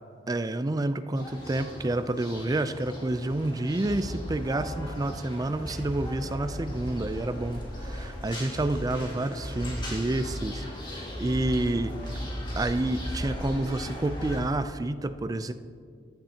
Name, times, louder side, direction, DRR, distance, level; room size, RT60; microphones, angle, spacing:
voice 1, 0.3-11.9 12.6-15.5, right 2 dB, 20° right, 11 dB, 0.4 m, -29 dB
sound 1, 1.2-14.4, equal, 25° left, 2.0 m, -37 dB
15.0 x 10.5 x 2.9 m, 2.2 s
head